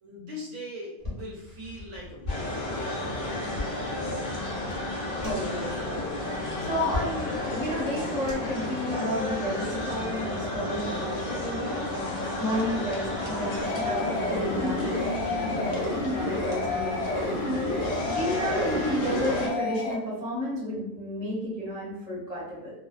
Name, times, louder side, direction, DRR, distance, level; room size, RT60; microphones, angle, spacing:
voice 1, 0.0-3.9, left 1 dB, 65° right, -4 dB, 0.9 m, -42 dB
sound 1, 1.0-8.7, left 3 dB, 20° right, 0.8 m, -40 dB
sound 2, 2.3-19.5, left 1 dB, 80° left, 0.4 m, -32 dB
voice 2, 5.1-11.9 12.4-17.4 18.0-22.7, equal, 15° left, -10 dB, 0.7 m, -32 dB
sound 3, 13.6-19.9, left 2 dB, 60° left, 0.8 m, -30 dB
2.6 x 2.2 x 2.3 m, 0.86 s
omnidirectional pair, 1.6 m